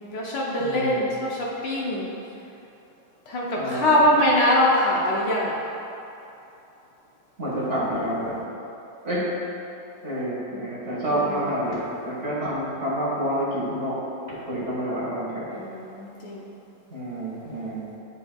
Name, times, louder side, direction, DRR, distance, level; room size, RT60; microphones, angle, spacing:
voice 1, 0.0-2.1 3.3-5.5 11.0-11.4 15.5-16.5, left 1 dB, 65° left, -4 dB, 1.3 m, -23 dB
voice 2, 0.6-1.0 3.5-4.0 7.4-8.4 9.0-9.3 10.0-14.0 14.3-15.5 16.9-17.8, right 1 dB, 40° right, -8 dB, 1.6 m, -28 dB
9.9 x 5.2 x 2.2 m, 2.9 s
omnidirectional pair, 2.2 m